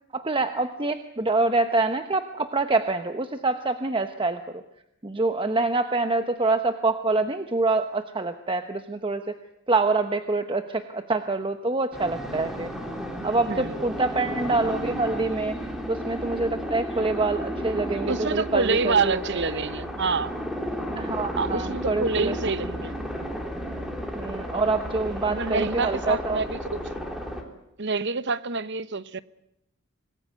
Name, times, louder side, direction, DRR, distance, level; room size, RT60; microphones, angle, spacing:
voice 1, 0.1-4.6 5.0-9.4 9.7-12.7 13.2-15.5 15.9-19.6 21.0-22.3 24.1-26.4, right 3 dB, 25° right, 1.0 m, -26 dB
sound 1, 11.9-27.4, equal, ahead, 3.6 m, -33 dB
voice 2, 13.5-13.8 18.1-20.3 21.4-22.9 25.2-27.0 27.8-29.2, right 4 dB, 55° right, 1.0 m, -27 dB
26.0 x 20.0 x 9.4 m
head